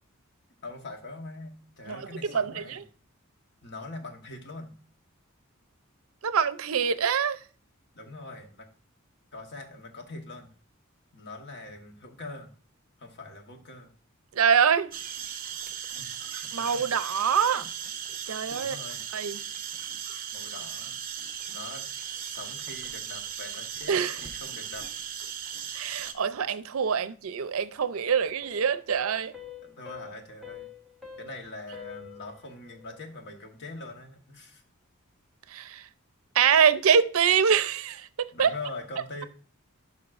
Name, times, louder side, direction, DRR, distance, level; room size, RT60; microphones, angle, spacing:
voice 1, 0.6-2.8 3.6-4.8 7.9-8.7 9.3-10.5 11.1-12.5 13.0-13.9 16.0-16.8 17.4-17.7 18.6-19.1 20.3-21.0 21.5-24.9 29.6-30.7 31.2-34.6 38.3-39.3, left 2 dB, 55° left, 1.2 m, -43 dB
voice 2, 1.9-2.8 6.2-7.4 14.3-14.9 16.5-17.6 18.3-18.8 19.1-19.4 23.9-24.2 25.7-29.3 35.5-35.8 36.3-38.5, right 7 dB, 80° right, 0.5 m, -25 dB
sound 1, 14.9-26.1, right 8 dB, 40° right, 0.7 m, -37 dB
sound 2, 28.2-33.1, left 6 dB, ahead, 0.9 m, -47 dB
11.0 x 5.7 x 2.5 m
head